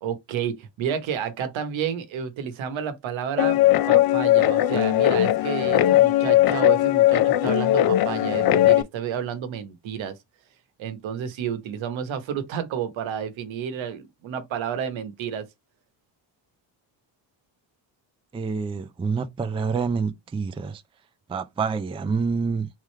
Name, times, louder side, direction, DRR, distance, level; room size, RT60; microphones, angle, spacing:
voice 1, 0.0-3.6 3.9-10.2 10.8-15.5, right 8 dB, 75° right, 1.0 m, -30 dB
Guitar, 3.4-8.8, left 13 dB, 55° left, 0.5 m, -19 dB
voice 2, 18.3-20.8 21.3-22.7, right 5 dB, 15° right, 0.4 m, -27 dB
3.6 x 3.2 x 3.2 m
cardioid pair, 105°, 46 cm